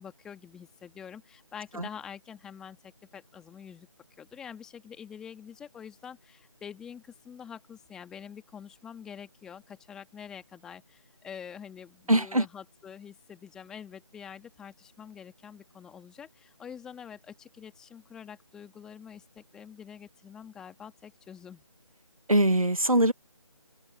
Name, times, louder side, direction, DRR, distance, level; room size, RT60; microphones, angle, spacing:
voice 1, 0.0-3.9 4.2-21.6, left 8 dB, 5° left, 2.1 m, -46 dB
voice 2, 12.1-12.5 22.3-23.1, right 1 dB, 85° right, 1.3 m, -22 dB
open air
figure-of-eight pair, 160°, 17 cm